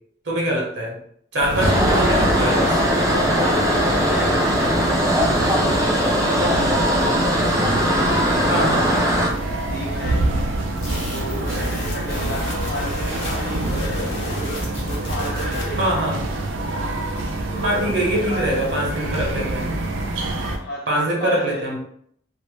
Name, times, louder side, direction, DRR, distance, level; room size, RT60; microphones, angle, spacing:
voice 1, 0.2-1.0 1.3-2.7 8.5-8.9 15.7-16.2 17.6-19.7 20.9-21.8, right 1 dB, 60° right, -2 dB, 0.8 m, -23 dB
sound 1, 1.4-20.6, right 2 dB, 90° right, 0.4 m, -27 dB
sound 2, 1.6-9.3, equal, 20° right, 0.4 m, -20 dB
voice 2, 1.7-5.1 5.6-7.2 7.8-9.1 9.7-10.3 11.1-14.2 14.9-16.1 17.5-18.9 20.6-21.7, left 1 dB, 55° left, -1 dB, 0.6 m, -33 dB
sound 3, 10.8-15.8, left 1 dB, 80° left, 0.9 m, -31 dB
2.5 x 2.0 x 3.0 m, 0.67 s
head